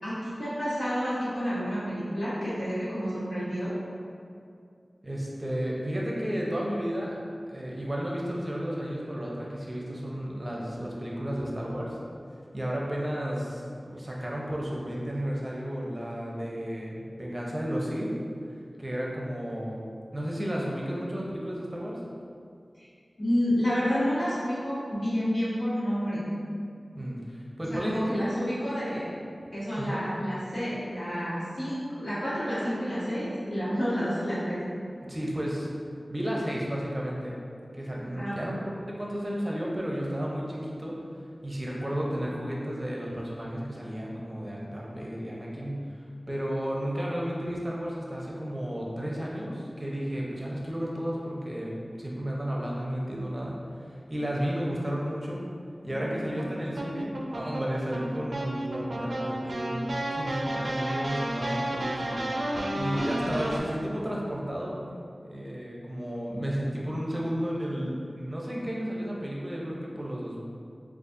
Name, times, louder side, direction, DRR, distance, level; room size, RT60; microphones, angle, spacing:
voice 1, 0.0-3.7 23.2-26.2 27.7-29.0 29.5-34.6 38.2-38.4, equal, 80° left, -11 dB, 1.3 m, -29 dB
voice 2, 5.0-7.2 7.5-12.0 12.5-18.1 18.8-19.9 20.1-22.0 26.9-28.0 29.7-30.1 35.1-35.7 36.1-37.4 37.7-38.5 38.9-41.0 41.4-55.4 55.8-64.8 65.2-70.4, equal, 25° right, -4 dB, 0.6 m, -33 dB
sound 1, 55.9-63.6, right 1 dB, 80° right, 0.4 m, -32 dB
4.0 x 2.4 x 2.5 m, 2.4 s
wide cardioid pair, 50°, 0 cm